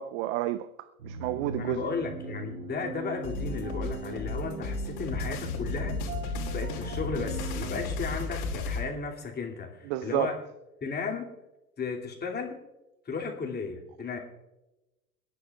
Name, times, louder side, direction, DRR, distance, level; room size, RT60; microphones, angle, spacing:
voice 1, 0.0-1.9 9.8-10.3, right 13 dB, 50° right, 0.7 m, -31 dB
sound 1, 1.0-7.8, right 4 dB, 70° right, 2.7 m, -40 dB
voice 2, 1.5-6.0 6.5-10.4 10.8-11.3 11.8-12.6 13.1-14.2, left 4 dB, 20° left, 2.5 m, -34 dB
sound 2, 3.2-8.8, left 3 dB, 55° left, 3.1 m, -34 dB
28.5 x 10.5 x 2.3 m
hypercardioid pair, 90°, 43 cm